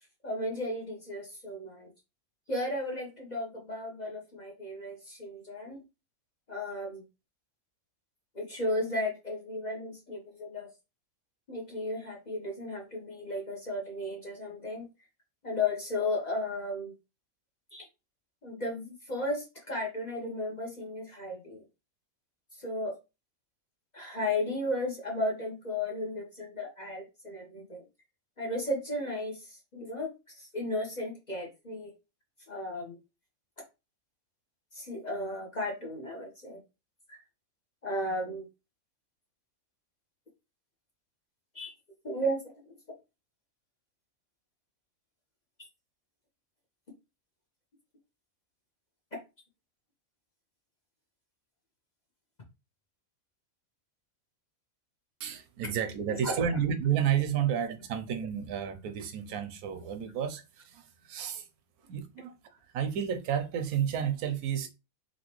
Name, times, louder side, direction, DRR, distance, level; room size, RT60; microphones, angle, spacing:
voice 1, 0.2-1.9 2.5-5.8 6.5-7.0 8.3-10.7 11.5-14.9 15.4-16.9 17.7-17.8 18.4-21.6 22.6-22.9 23.9-27.8 28.4-31.9 32.5-33.0 34.7-36.6 37.1-37.2 37.8-38.5 41.5-41.7 42.0-42.4 42.7-42.8 56.1-56.4, left 1 dB, 35° left, 0.8 m, -34 dB
voice 2, 55.2-61.5 61.9-62.3 62.7-64.7, right 8 dB, 85° right, 1.1 m, -31 dB
3.2 x 2.7 x 2.9 m
omnidirectional pair, 1.5 m